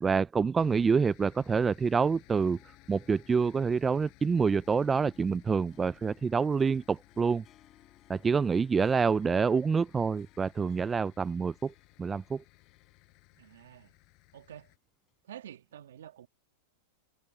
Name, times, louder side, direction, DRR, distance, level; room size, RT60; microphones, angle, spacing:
voice 1, 0.0-2.6 2.9-7.4 8.1-11.7 12.0-12.4, right 5 dB, 15° right, 0.4 m, -27 dB
sound 1, 0.6-14.8, left 28 dB, 50° left, 7.6 m, -60 dB
Harp, 1.9-13.8 14.1-14.2 15.1-15.2, left 10 dB, 30° left, 7.2 m, -65 dB
voice 2, 13.4-13.9 14.3-14.7 15.2-16.3, right 10 dB, 80° right, 2.0 m, -48 dB
hypercardioid pair, 120°, 0 cm